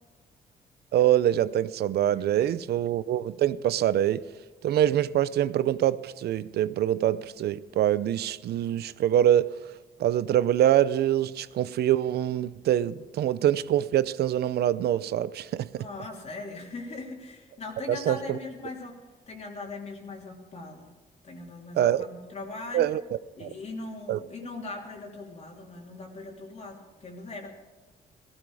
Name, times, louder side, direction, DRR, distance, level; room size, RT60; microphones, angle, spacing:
voice 1, 0.9-4.3 4.6-9.6 10.0-15.8 17.9-18.4 21.8-22.0 22.7-23.0 23.4-23.5 24.1-24.2, right 11 dB, 80° right, 0.6 m, -24 dB
voice 2, 2.2-2.6 15.8-19.0 19.3-20.9 21.2-23.0 23.3-27.5, left 3 dB, 40° left, 3.2 m, -40 dB
17.0 x 15.5 x 4.9 m
cardioid pair, 135°, 16 cm